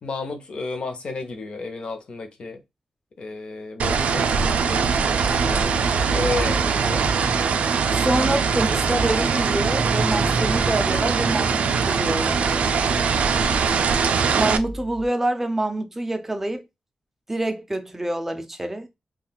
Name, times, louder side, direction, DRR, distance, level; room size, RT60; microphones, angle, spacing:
voice 1, 0.0-2.6 3.2-4.9 5.3-5.7 6.1-7.0, left 3 dB, 50° left, 0.7 m, -32 dB
sound 1, 3.8-14.6, right 5 dB, 80° right, 0.3 m, -22 dB
sound 2, 4.9-15.1, equal, 20° left, 1.4 m, -37 dB
voice 2, 7.9-12.5 14.4-16.6 17.3-18.9, right 1 dB, 15° right, 0.5 m, -26 dB
3.6 x 2.3 x 2.2 m
wide cardioid pair, 175°, 2 cm